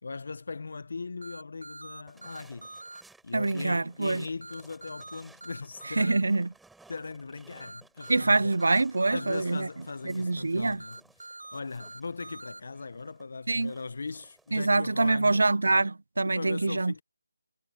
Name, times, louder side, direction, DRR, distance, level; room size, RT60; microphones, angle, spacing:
voice 1, 0.0-2.8 3.2-6.3 6.9-8.5 9.1-15.4 16.2-17.0, left 4 dB, 60° left, 1.0 m, -39 dB
sound 1, 1.2-3.0 4.4-6.2 7.6-9.4 10.8-12.6, right 2 dB, 90° right, 1.1 m, -44 dB
sound 2, 2.1-14.7, right 3 dB, ahead, 7.2 m, -59 dB
voice 2, 3.3-4.3 5.9-6.5 8.1-9.7 10.0-10.8 13.5-13.7 14.5-16.9, right 3 dB, 75° right, 0.6 m, -25 dB
figure-of-eight pair, 165°, 0 cm